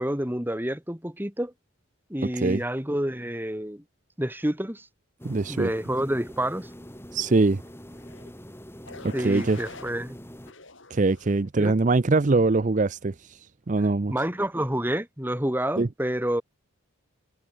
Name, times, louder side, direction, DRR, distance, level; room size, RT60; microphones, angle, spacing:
voice 1, 0.0-1.5 2.1-3.8 4.2-4.9 5.5-6.7 9.1-10.2 11.6-11.7 14.1-16.4, right 1 dB, 10° right, 2.1 m, -28 dB
sound 1, 5.2-10.5, equal, 10° left, 7.3 m, -44 dB
voice 2, 5.2-5.7 7.1-7.6 9.0-9.6 10.9-14.1 15.8-15.9, right 3 dB, 35° right, 0.5 m, -23 dB
sound 2, 7.9-8.3 8.8-9.9 10.5-11.5 12.1-12.5, left 3 dB, 60° left, 6.1 m, -46 dB
head